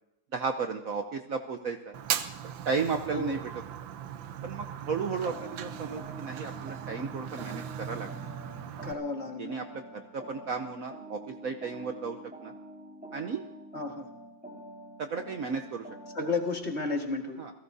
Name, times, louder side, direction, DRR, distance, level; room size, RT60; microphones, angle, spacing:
voice 1, 0.3-2.0 2.6-3.4 4.4-8.1 9.4-12.2 12.4-12.5 13.1-13.4 15.0-15.8 17.4-17.5, right 5 dB, 55° right, 6 dB, 1.1 m, -34 dB
Fire, 1.9-8.9, right 9 dB, 85° right, 1.5 m, -38 dB
sound 1, 5.3-16.5, right 1 dB, 5° right, 4.8 m, -47 dB
voice 2, 8.8-9.5 13.7-14.1 16.1-17.4, left 3 dB, 35° left, 2 dB, 2.0 m, -32 dB
28.5 x 17.5 x 2.7 m, 0.87 s
omnidirectional pair, 2.0 m